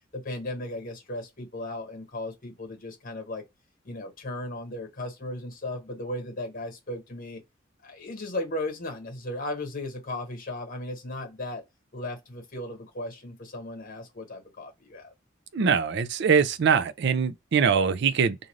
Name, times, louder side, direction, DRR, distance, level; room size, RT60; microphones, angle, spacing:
voice 1, 0.1-3.4 3.8-7.4 7.8-11.6 11.9-15.1, left 1 dB, 45° left, 1.1 m, -36 dB
voice 2, 15.5-18.4, right 6 dB, 60° right, 0.4 m, -23 dB
2.5 x 2.5 x 3.1 m
head